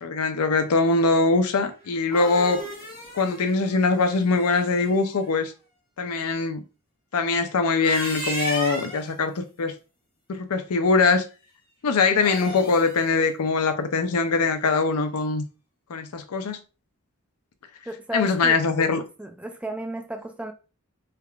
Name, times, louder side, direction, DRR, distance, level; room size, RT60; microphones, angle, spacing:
voice 1, 0.0-2.6 3.1-5.5 6.0-6.6 7.1-9.7 10.3-11.2 11.8-15.4 15.9-16.6 18.1-19.0, left 4 dB, 85° left, 0.5 m, -22 dB
sound 1, 1.8-4.9 7.6-9.1 12.1-13.0, equal, 40° left, 1.4 m, -34 dB
voice 2, 17.9-18.6 19.2-20.5, right 1 dB, 5° right, 0.3 m, -33 dB
3.4 x 3.3 x 2.3 m
head